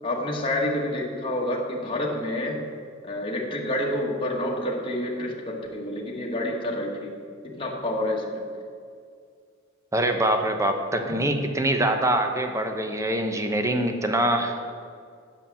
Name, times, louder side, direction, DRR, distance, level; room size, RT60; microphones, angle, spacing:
voice 1, 0.0-2.6 3.0-7.1 7.4-8.4 11.1-11.2, left 1 dB, 25° left, -2 dB, 1.3 m, -28 dB
voice 2, 9.9-14.7, right 1 dB, 15° right, 5 dB, 0.8 m, -24 dB
8.2 x 7.2 x 7.0 m, 2.2 s
head